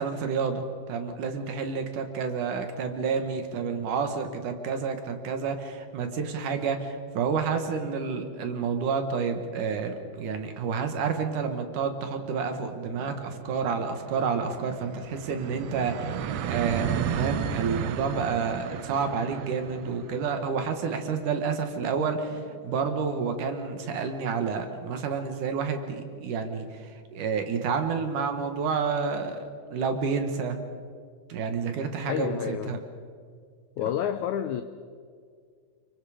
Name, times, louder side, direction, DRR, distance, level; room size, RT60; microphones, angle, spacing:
voice 1, 0.0-16.2 16.5-30.6 31.3-32.8, right 5 dB, 65° right, 6 dB, 2.8 m, -29 dB
sound 1, 11.9-23.3, right 9 dB, 90° right, 1.5 m, -35 dB
voice 2, 32.0-32.8 33.8-34.6, left 10 dB, 85° left, 10 dB, 1.7 m, -29 dB
29.0 x 24.0 x 5.0 m, 2.1 s
omnidirectional pair, 4.3 m